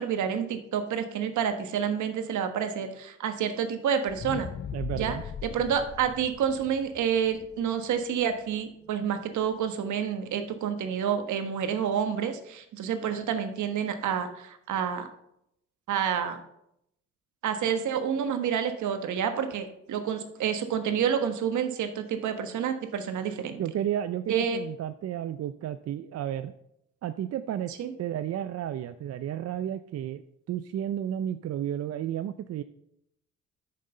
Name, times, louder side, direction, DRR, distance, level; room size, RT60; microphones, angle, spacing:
voice 1, 0.0-4.5 4.9-5.2 5.4-15.1 15.9-16.4 17.4-23.6 24.3-24.6 27.8-27.9, right 8 dB, 75° right, 8 dB, 1.3 m, -29 dB
sound 1, 4.1-8.3 8.8-8.9, left 8 dB, 35° left, 0.5 m, -39 dB
voice 2, 4.7-5.2 23.6-26.5 27.0-27.7 28.0-30.2 30.5-32.6, right 10 dB, 55° right, 11 dB, 0.5 m, -32 dB
9.2 x 6.6 x 5.5 m, 0.77 s
cardioid pair, 90°, 30 cm